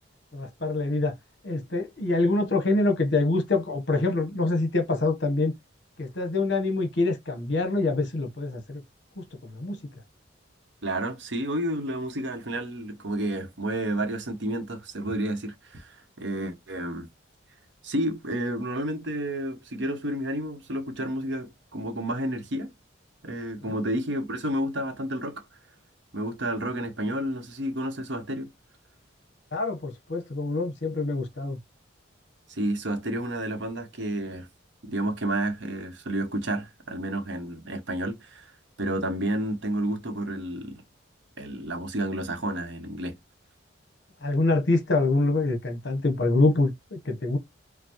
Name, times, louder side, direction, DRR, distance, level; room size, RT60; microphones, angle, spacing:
voice 1, 0.3-1.1 1.4-5.5 6.0-8.8 9.2-9.8 29.5-31.6 44.2-47.4, left 2 dB, 60° left, 1.0 m, -25 dB
voice 2, 10.8-17.1 17.8-22.7 23.2-25.4 26.1-28.5 32.5-34.5 34.8-38.5 38.8-40.8 41.4-43.1, right 1 dB, 65° right, 0.9 m, -30 dB
5.3 x 2.1 x 3.0 m
head